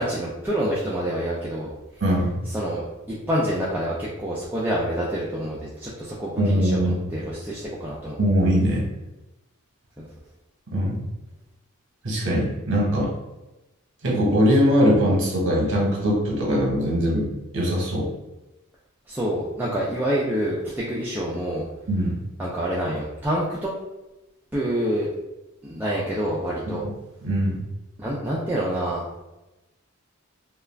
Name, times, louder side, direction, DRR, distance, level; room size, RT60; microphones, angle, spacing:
voice 1, 0.0-1.7 2.5-2.8 3.3-8.2 10.0-10.1 19.1-21.6 22.4-23.7 24.5-25.1 25.6-26.8 28.0-29.1, equal, 10° right, -7 dB, 0.3 m, -27 dB
voice 2, 2.0-2.4 6.4-7.0 8.2-8.8 10.7-11.0 12.0-13.1 14.0-18.1 21.9-22.2 26.7-26.9 27.2-27.6, equal, 55° right, -3 dB, 0.8 m, -21 dB
2.3 x 2.3 x 3.3 m, 1.0 s
head